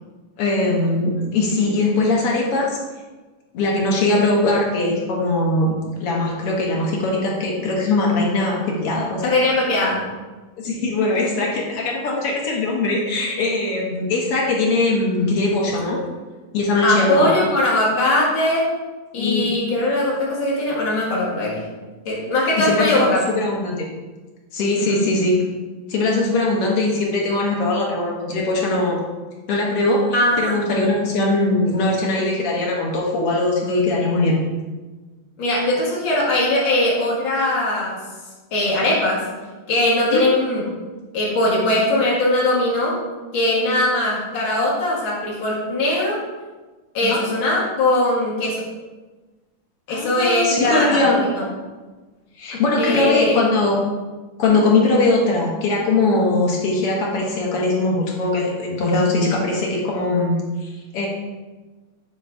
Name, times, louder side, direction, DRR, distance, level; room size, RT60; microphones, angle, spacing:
voice 1, 0.4-2.8 3.5-5.7 6.0-9.3 10.6-16.0 16.5-17.3 19.2-19.5 22.6-23.9 24.5-25.4 25.9-29.0 29.5-34.4 40.1-40.3 47.0-47.2 49.9-51.2 52.4-53.8 54.4-61.1, left 2 dB, 60° left, -2 dB, 1.7 m, -20 dB
voice 2, 9.2-10.1 16.8-18.7 19.1-21.7 22.1-23.2 24.8-25.0 30.1-30.4 35.4-38.0 38.5-39.3 39.7-40.6 41.1-43.0 43.3-46.2 46.9-48.7 49.9-51.5 52.8-53.5 54.5-54.6, left 1 dB, 45° left, -5 dB, 2.1 m, -20 dB
9.3 x 3.1 x 4.6 m, 1.3 s
omnidirectional pair, 3.6 m